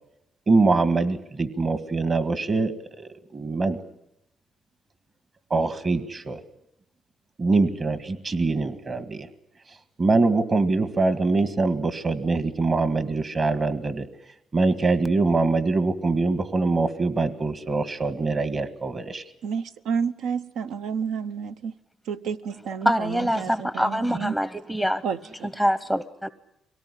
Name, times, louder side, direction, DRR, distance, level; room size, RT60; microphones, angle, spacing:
voice 1, 0.5-3.8 5.5-6.4 7.4-9.3 10.0-14.1 14.5-19.2, right 3 dB, 35° right, 12 dB, 1.8 m, -23 dB
voice 2, 19.4-21.8 22.1-24.4 25.0-25.5, right 6 dB, 80° right, 10 dB, 0.9 m, -30 dB
voice 3, 22.8-25.0 25.6-26.3, equal, 10° right, 14 dB, 0.8 m, -24 dB
23.5 x 18.0 x 10.0 m, 0.81 s
cardioid pair, 90°, 0 cm